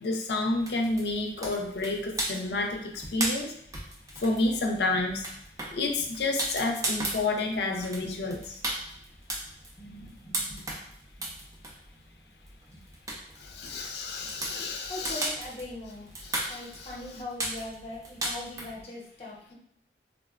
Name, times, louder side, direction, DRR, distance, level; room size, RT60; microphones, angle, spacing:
voice 1, 0.0-3.5 4.2-5.3 5.7-8.6 13.4-15.3 16.3-16.6, left 2 dB, 65° left, 3 dB, 0.5 m, -30 dB
sound 1, 0.6-18.8, right 1 dB, 20° right, 0.3 m, -37 dB
voice 2, 7.8-8.2 9.8-10.8 11.2-11.3 12.7-12.8 14.2-14.6 14.9-16.1 16.5-19.5, left 1 dB, 35° left, -4 dB, 0.8 m, -41 dB
3.6 x 2.1 x 2.3 m, 0.70 s
head